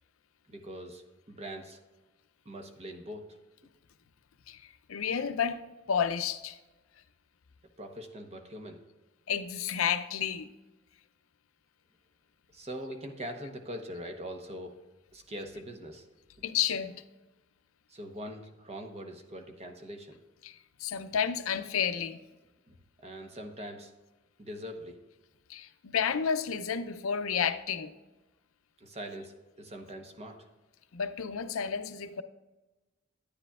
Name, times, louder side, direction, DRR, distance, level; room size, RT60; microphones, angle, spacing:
voice 1, 0.5-1.8 2.4-3.3 7.8-8.8 12.5-14.8 15.1-16.1 17.9-20.2 22.7-23.9 24.4-25.0 28.8-30.5, equal, 30° right, 1.0 m, -42 dB
voice 2, 4.5-5.6 5.9-6.6 9.3-10.5 16.4-17.0 20.4-22.2 25.5-27.9 30.9-32.2, left 7 dB, 85° left, 0.5 m, -31 dB
10.0 x 9.8 x 2.4 m
head